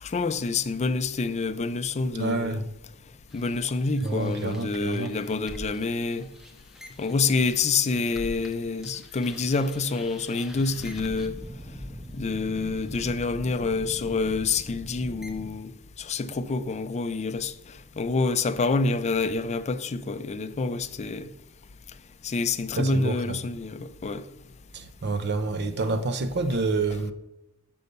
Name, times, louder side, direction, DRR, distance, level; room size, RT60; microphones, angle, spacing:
voice 1, 0.0-2.6 3.3-6.3 7.0-11.4 12.2-15.7 16.0-17.5 18.0-21.3 22.2-24.2, left 4 dB, 30° left, 0.4 m, -27 dB
voice 2, 2.1-2.6 4.0-5.1 22.8-23.4 24.7-27.1, right 3 dB, 50° right, 0.6 m, -28 dB
sound 1, 3.3-8.6 8.8-15.5, equal, ahead, 0.7 m, -43 dB
6.7 x 5.4 x 6.6 m
head